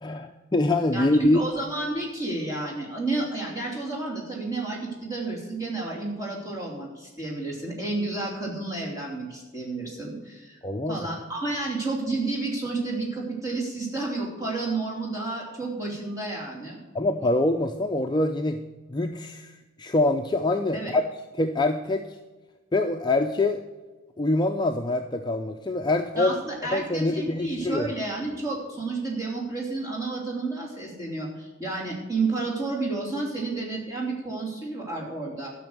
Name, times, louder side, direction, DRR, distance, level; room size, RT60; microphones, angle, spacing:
voice 1, 0.0-1.4 10.6-11.1 16.9-18.6 18.9-19.5 19.8-21.0 21.4-22.1 22.7-23.6 24.2-26.4 26.7-27.9, left 2 dB, 20° left, 4 dB, 0.5 m, -24 dB
voice 2, 0.9-10.6 10.9-16.8 20.7-20.9 26.2-35.5, right 3 dB, 15° right, -3 dB, 3.0 m, -31 dB
12.5 x 6.0 x 7.9 m, 1.2 s
head